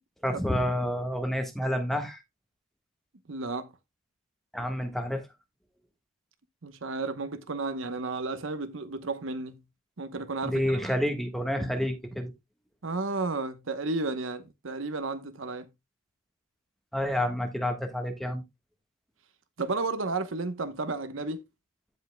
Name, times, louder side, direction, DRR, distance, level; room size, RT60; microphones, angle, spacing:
voice 1, 0.2-2.2 4.5-5.3 10.4-12.3 16.9-18.4, equal, ahead, 1.4 m, -29 dB
voice 2, 3.3-3.7 6.6-9.6 10.0-11.0 12.8-15.7 19.6-21.4, right 3 dB, 65° right, 1.0 m, -32 dB
15.5 x 5.5 x 2.2 m
head